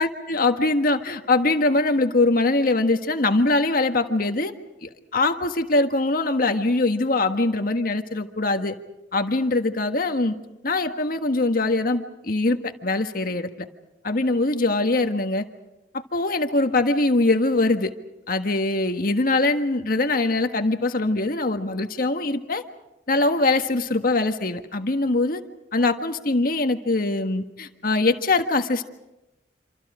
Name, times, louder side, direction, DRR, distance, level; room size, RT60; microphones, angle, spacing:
voice 1, 0.0-4.5 4.8-8.7 9.1-10.3 10.6-13.5 14.0-15.5 15.9-17.9 18.3-22.6 23.1-25.4 25.7-28.8, left 2 dB, 55° left, 6 dB, 1.6 m, -22 dB
27.0 x 27.0 x 5.0 m, 0.94 s
head